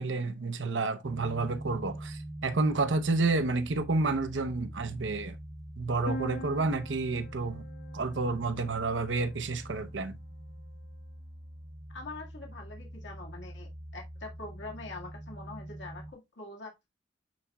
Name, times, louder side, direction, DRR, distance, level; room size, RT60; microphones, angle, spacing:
voice 1, 0.0-5.4 5.8-7.6 7.9-10.2, right 3 dB, 85° right, 0.8 m, -30 dB
sound 1, 1.0-16.1, right 1 dB, 15° right, 0.6 m, -44 dB
sound 2, 6.1-9.8, left 1 dB, 55° left, 0.6 m, -44 dB
voice 2, 11.9-16.9, left 3 dB, 80° left, 1.8 m, -44 dB
10.5 x 4.1 x 2.3 m
head